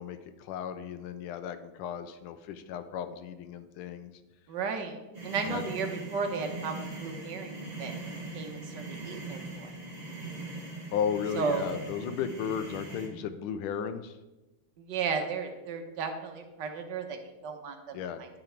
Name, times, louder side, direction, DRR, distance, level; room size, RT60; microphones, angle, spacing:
voice 1, 0.0-4.1 5.5-5.6 10.9-14.2 17.9-18.2, left 8 dB, 80° left, 10 dB, 1.5 m, -35 dB
voice 2, 4.5-5.0 5.2-7.9 8.3-9.8 11.3-11.7 14.8-18.3, right 5 dB, 65° right, 5 dB, 1.3 m, -34 dB
sound 1, 5.1-13.1, right 2 dB, 20° right, 1.5 m, -41 dB
11.0 x 4.0 x 4.5 m, 1.1 s
omnidirectional pair, 2.4 m